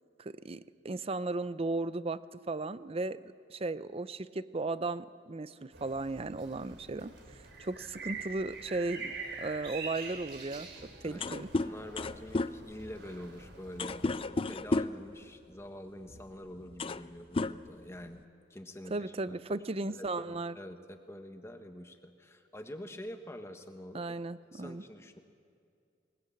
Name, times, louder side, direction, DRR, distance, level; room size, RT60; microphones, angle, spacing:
voice 1, 0.2-2.2 2.5-3.2 3.5-7.1 7.6-9.1 9.4-10.7 11.0-11.5 18.9-20.6 23.9-24.8, right 3 dB, 35° right, 15 dB, 0.6 m, -35 dB
sound 1, 5.7-14.3, right 4 dB, 75° right, 3.6 m, -45 dB
sound 2, 10.8-10.9 11.1-15.1 16.1-16.2 16.6-17.1 17.3-18.2, left 2 dB, 30° left, 0.5 m, -33 dB
voice 2, 11.0-18.2 18.5-24.1 24.5-25.2, left 1 dB, 15° left, 6 dB, 1.4 m, -46 dB
20.5 x 20.0 x 8.6 m, 2.4 s
head